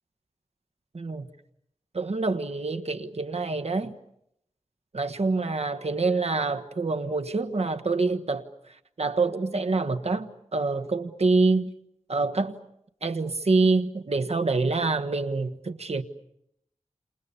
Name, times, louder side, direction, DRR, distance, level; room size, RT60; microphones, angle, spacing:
voice 1, 0.9-1.3 1.9-3.9 4.9-8.4 9.0-11.7 12.1-12.5 13.0-16.0, right 3 dB, 60° right, 1.4 m, -26 dB
29.5 x 27.5 x 7.0 m
wide cardioid pair, 75°, 12 cm